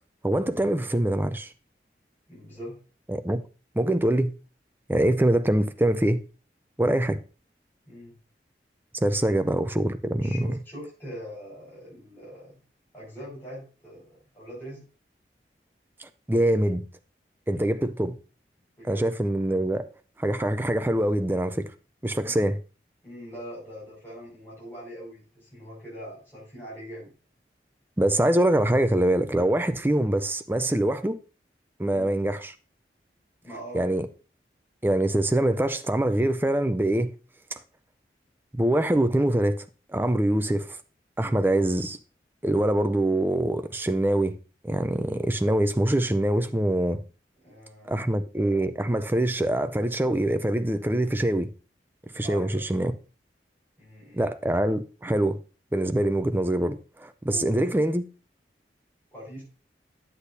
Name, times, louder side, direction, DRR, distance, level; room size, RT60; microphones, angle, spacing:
voice 1, 0.2-1.5 3.1-3.4 3.8-4.3 4.9-6.2 6.8-7.2 8.9-10.5 16.0-16.8 17.5-18.2 18.8-19.9 20.2-21.7 22.0-22.6 28.0-31.2 31.8-32.5 33.7-34.1 34.8-37.1 37.5-37.6 38.5-40.8 41.2-42.0 42.4-44.4 44.6-47.0 47.9-51.5 52.1-52.9 54.1-55.4 55.7-58.0, right 1 dB, 10° right, 0.5 m, -24 dB
voice 2, 2.3-2.8 7.9-8.2 9.2-9.4 10.2-12.6 12.9-14.8 17.5-17.6 18.8-19.1 22.2-22.3 23.0-27.1 31.9-32.1 33.4-33.8 47.4-48.1 52.2-52.6 53.8-54.2 57.3-57.7 59.1-59.4, equal, 15° left, 5.7 m, -42 dB
10.0 x 8.2 x 2.7 m
head